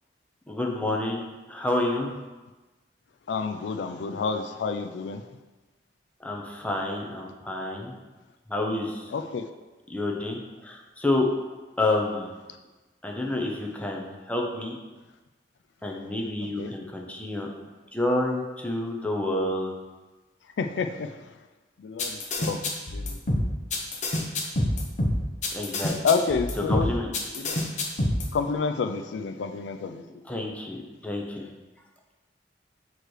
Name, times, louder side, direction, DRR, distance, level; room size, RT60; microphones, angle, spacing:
voice 1, 0.5-2.1 6.2-7.9 8.5-9.1 9.9-11.3 11.8-12.3 13.0-14.8 15.8-17.5 17.9-19.7 25.5-25.9 26.6-27.1 30.3-31.5, left 2 dB, 10° left, -1 dB, 0.7 m, -29 dB
voice 2, 3.3-5.2 9.1-9.5 16.6-16.7 20.6-21.2 21.8-22.6 22.9-23.4 26.0-26.9 27.4-27.6 28.3-30.0, left 5 dB, 80° left, 7 dB, 0.4 m, -29 dB
sound 1, 22.0-28.3, left 1 dB, 45° left, 0.8 m, -26 dB
6.5 x 3.1 x 4.8 m, 1.2 s
head